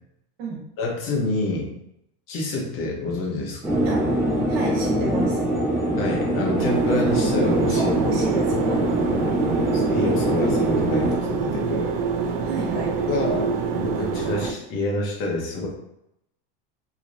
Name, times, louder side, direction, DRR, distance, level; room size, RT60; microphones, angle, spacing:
voice 1, 0.8-1.7 2.3-3.8 6.0-7.9 9.7-11.9 12.2-12.3 13.1-13.5 13.7-15.7, left 2 dB, 45° left, -2 dB, 1.0 m, -27 dB
sound 1, 3.6-11.2, right 1 dB, 10° right, 0.7 m, -23 dB
voice 2, 4.5-5.4 7.7-9.2 12.4-12.9, right 3 dB, 90° right, -3 dB, 1.4 m, -30 dB
sound 2, 6.6-14.5, right 5 dB, 65° right, 0.5 m, -26 dB
3.1 x 3.0 x 2.6 m, 0.81 s
supercardioid pair, 155°, 30 cm